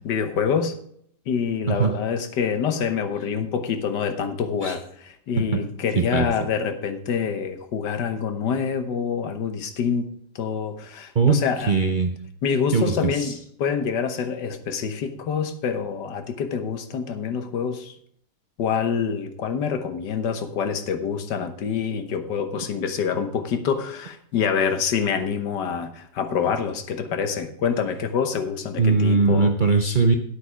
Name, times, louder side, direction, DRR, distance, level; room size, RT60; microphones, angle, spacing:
voice 1, 0.0-0.8 1.3-11.7 12.4-17.9 18.6-29.6, left 6 dB, 80° left, 9 dB, 1.6 m, -26 dB
voice 2, 6.0-6.3 11.1-11.4 11.7-12.2 12.7-13.3 28.8-30.1, right 4 dB, 50° right, 4 dB, 0.5 m, -20 dB
9.5 x 8.3 x 4.9 m, 0.67 s
omnidirectional pair, 1.8 m